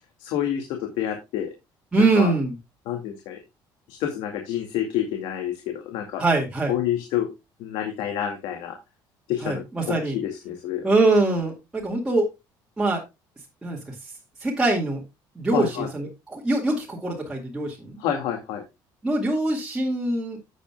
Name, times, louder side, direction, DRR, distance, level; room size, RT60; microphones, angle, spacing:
voice 1, 0.2-1.5 2.0-2.3 2.9-3.4 3.9-6.2 6.7-7.3 7.6-8.8 9.3-10.9 15.5-15.9 18.0-18.6, left 10 dB, 80° left, 4 dB, 2.1 m, -28 dB
voice 2, 1.9-2.5 6.2-6.7 9.4-10.2 10.8-12.3 12.8-13.0 13.6-13.9 14.4-15.0 15.4-18.0 19.0-20.4, right 2 dB, 10° right, -4 dB, 2.1 m, -23 dB
11.5 x 8.4 x 2.2 m, 0.24 s
cardioid pair, 170°, 9 cm